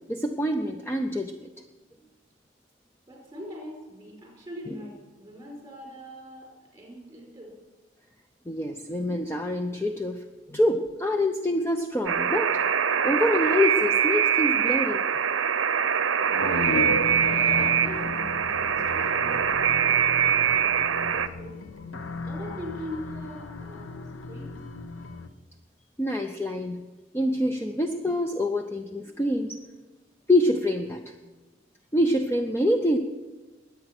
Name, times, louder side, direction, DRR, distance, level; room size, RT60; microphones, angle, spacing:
voice 1, 0.1-1.5 8.5-12.6 13.0-15.0 26.0-26.8 27.1-29.6 30.3-31.1 31.9-33.0, left 1 dB, 10° left, 5 dB, 0.6 m, -26 dB
voice 2, 3.1-7.5 17.4-20.0 20.3-21.6 22.2-24.6, equal, 15° right, -1 dB, 4.9 m, -42 dB
Alarm, 12.1-21.3, right 8 dB, 80° right, 0.6 m, -23 dB
sound 1, 16.2-19.9, left 1 dB, 45° left, 1.1 m, -32 dB
sound 2, 16.7-25.3, left 3 dB, 85° left, 0.9 m, -38 dB
21.0 x 8.9 x 6.0 m, 1.2 s
head